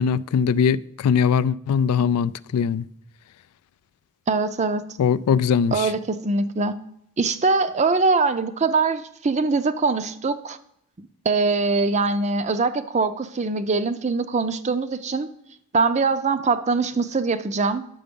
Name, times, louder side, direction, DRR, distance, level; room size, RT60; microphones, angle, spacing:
voice 1, 0.0-2.8 5.0-5.9, left 7 dB, 90° left, 0.3 m, -21 dB
voice 2, 4.3-4.8 5.7-6.8 7.2-10.6 11.2-15.3 15.7-17.9, right 4 dB, 30° right, 0.5 m, -22 dB
10.0 x 6.8 x 5.2 m
head